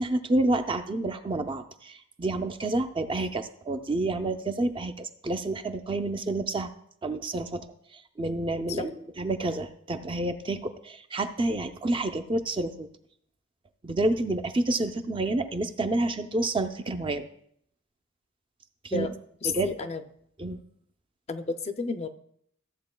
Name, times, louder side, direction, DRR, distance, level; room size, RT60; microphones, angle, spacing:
voice 1, 0.0-6.7 7.0-7.7 7.9-8.9 9.2-12.9 13.8-17.3 18.8-19.1 19.4-19.7 20.4-20.6, right 2 dB, 25° right, 7 dB, 0.4 m, -29 dB
voice 2, 19.4-20.0 21.3-22.1, left 4 dB, 30° left, 8 dB, 0.4 m, -31 dB
14.5 x 7.7 x 2.2 m, 0.69 s
head